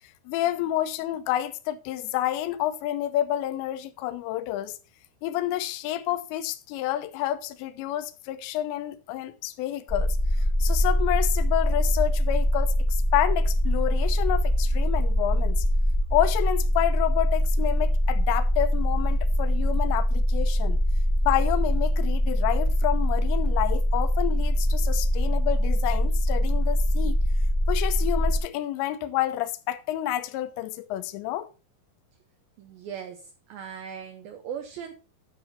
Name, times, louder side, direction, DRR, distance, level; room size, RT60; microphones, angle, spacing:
voice 1, 0.3-4.8 5.2-10.2 10.6-15.7 16.1-20.8 21.2-27.2 27.7-31.5, left 13 dB, 80° left, 3.0 m, -29 dB
sound 1, 9.9-28.4, equal, 15° left, 1.1 m, -23 dB
voice 2, 32.6-34.9, right 8 dB, 75° right, 2.2 m, -38 dB
12.5 x 6.2 x 4.2 m
omnidirectional pair, 5.3 m